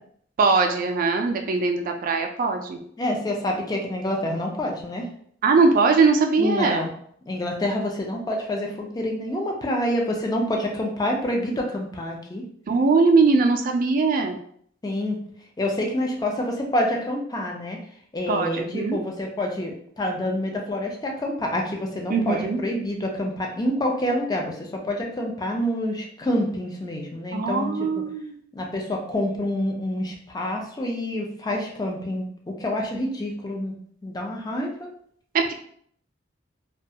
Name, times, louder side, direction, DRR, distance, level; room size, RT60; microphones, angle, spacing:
voice 1, 0.4-2.8 5.4-6.8 12.7-14.4 18.3-19.0 22.1-22.6 27.3-28.4 35.3-35.5, right 4 dB, 45° right, 4 dB, 0.3 m, -21 dB
voice 2, 3.0-5.1 6.4-6.9 7.3-12.4 14.8-15.2 15.6-17.8 18.1-24.5 24.9-27.7 28.5-32.3 32.6-33.7 34.0-34.9, left 1 dB, 20° left, 1 dB, 0.4 m, -27 dB
2.3 x 2.2 x 2.7 m, 0.64 s
head